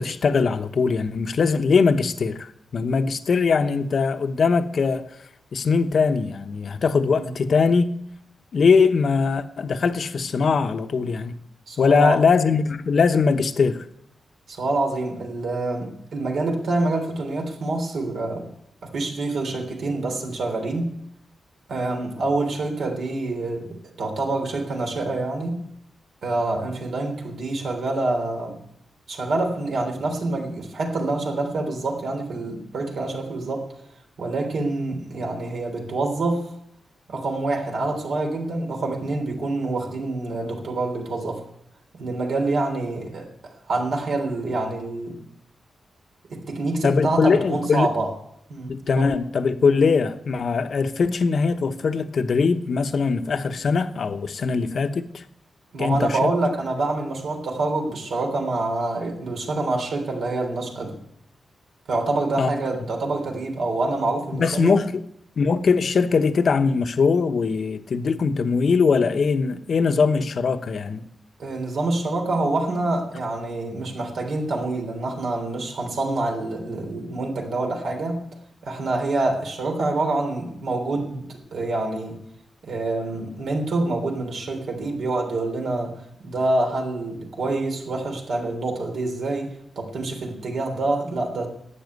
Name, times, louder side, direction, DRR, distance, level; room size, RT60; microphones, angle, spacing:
voice 1, 0.0-5.1 5.5-7.9 8.5-11.4 11.8-13.9 46.8-47.9 48.7-55.2 55.8-56.3 62.4-62.5 64.3-65.0 65.4-71.1, left 5 dB, 55° left, 0.9 m, -21 dB
voice 2, 11.7-12.2 14.5-18.5 18.8-20.9 21.7-25.6 26.2-28.6 29.1-33.7 34.2-36.5 37.1-41.4 41.9-45.2 46.3-48.1 48.5-49.1 55.7-61.0 61.9-64.8 71.4-78.2 78.6-82.1 82.6-91.5, right 2 dB, 70° right, 3.5 m, -26 dB
12.0 x 8.8 x 9.4 m
wide cardioid pair, 125°, 0 cm